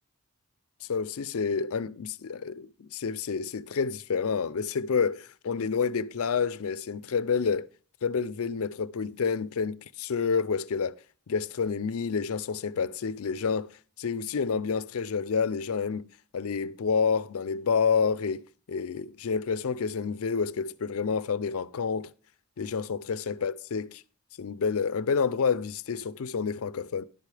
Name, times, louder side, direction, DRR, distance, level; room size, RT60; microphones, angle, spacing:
voice 1, 0.8-7.7 8.0-11.0 11.3-13.7 14.0-16.1 16.3-22.1 22.6-24.0 24.4-27.0, left 5 dB, 70° left, 0.5 m, -29 dB
11.0 x 8.2 x 3.3 m
head